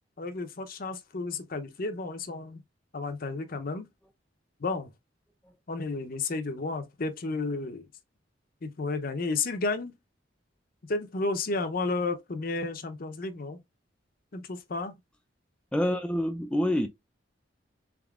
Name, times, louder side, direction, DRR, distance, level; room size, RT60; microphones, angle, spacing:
voice 1, 0.2-2.6 2.9-3.9 4.6-4.9 5.7-7.9 8.6-9.9 10.9-13.6 14.3-15.0, left 3 dB, 50° left, 0.6 m, -32 dB
voice 2, 15.7-16.9, left 1 dB, 5° left, 0.3 m, -26 dB
3.9 x 3.6 x 2.3 m
head